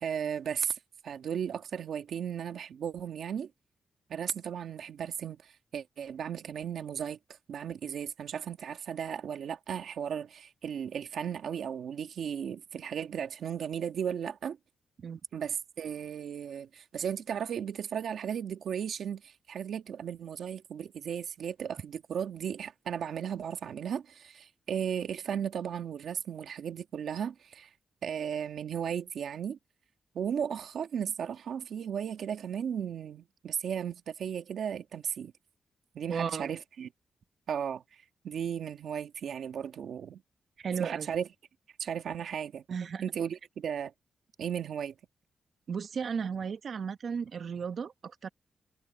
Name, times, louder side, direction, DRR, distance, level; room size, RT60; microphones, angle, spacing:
voice 1, 0.0-3.5 4.1-14.6 15.3-27.7 28.0-29.6 30.1-35.3 35.9-36.9 37.5-40.2 40.8-41.3 41.8-42.6 43.0-43.9 44.4-44.9, right 8 dB, 75° right, 1.5 m, -35 dB
voice 2, 36.1-36.5 40.6-41.1 42.7-43.0 45.7-48.3, right 6 dB, 50° right, 1.0 m, -35 dB
wide cardioid pair, 160°, 0 cm